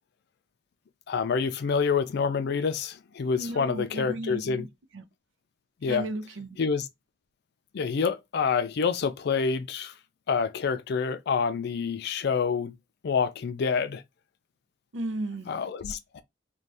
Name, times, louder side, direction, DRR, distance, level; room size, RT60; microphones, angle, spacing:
voice 1, 1.1-4.7 5.8-6.1 6.6-6.9 7.7-9.9 10.3-12.7 13.0-14.0 15.5-16.2, left 5 dB, 60° left, 0.4 m, -27 dB
voice 2, 3.4-4.7 4.9-5.0 5.9-6.6 14.9-15.5, right 2 dB, 85° right, 0.5 m, -34 dB
2.6 x 2.2 x 3.3 m
head